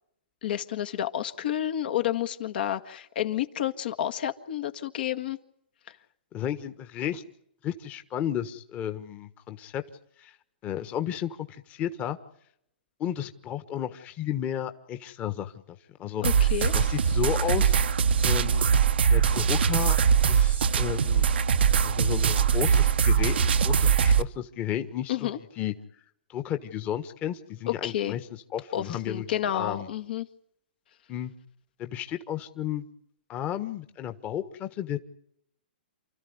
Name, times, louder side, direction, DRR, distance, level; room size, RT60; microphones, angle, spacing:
voice 1, 0.4-5.4 16.2-16.8 25.1-25.4 27.7-28.2 28.7-30.3, left 11 dB, 65° left, 9 dB, 1.7 m, -30 dB
voice 2, 6.3-7.2 7.6-9.8 10.2-10.4 10.6-12.2 13.0-17.8 18.2-18.7 19.1-20.0 20.3-21.3 21.8-25.3 25.6-25.7 26.3-29.9 31.1-31.3 31.8-32.9 33.3-35.0, left 10 dB, 25° left, 9 dB, 1.4 m, -33 dB
sound 1, 16.2-24.2, right 7 dB, 80° right, 1.0 m, -22 dB
28.5 x 14.0 x 9.7 m, 0.74 s
hypercardioid pair, 140°, 6 cm